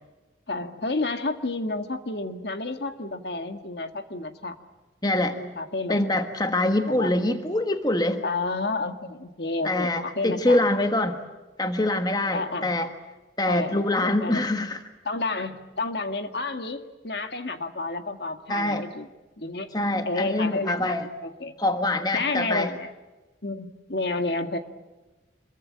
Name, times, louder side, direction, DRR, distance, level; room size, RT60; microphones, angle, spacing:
voice 1, 0.5-4.6 5.4-6.2 6.9-7.1 8.2-10.6 12.3-12.8 13.5-14.4 15.0-19.1 19.4-19.8 20.1-21.6 22.1-22.9 23.4-24.6, left 3 dB, 60° left, 7 dB, 1.9 m, -30 dB
voice 2, 5.0-5.4 5.9-8.2 9.6-11.2 11.6-12.9 13.4-14.8 18.5-18.9 19.7-21.1 21.6-22.7, left 1 dB, 20° left, 7 dB, 1.4 m, -24 dB
26.5 x 22.5 x 8.7 m, 1.1 s
head